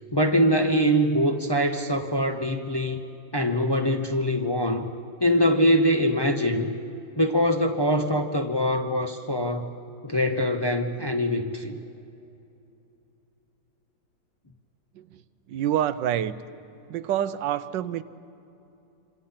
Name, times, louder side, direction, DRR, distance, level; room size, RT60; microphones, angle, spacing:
voice 1, 0.1-3.0 3.3-4.9 5.2-6.7 7.2-9.7 10.0-11.8, equal, 25° left, 4 dB, 0.6 m, -23 dB
voice 2, 15.5-16.4 16.9-18.0, right 10 dB, 80° right, 14 dB, 1.4 m, -27 dB
27.5 x 26.0 x 5.7 m, 2.8 s
omnidirectional pair, 2.0 m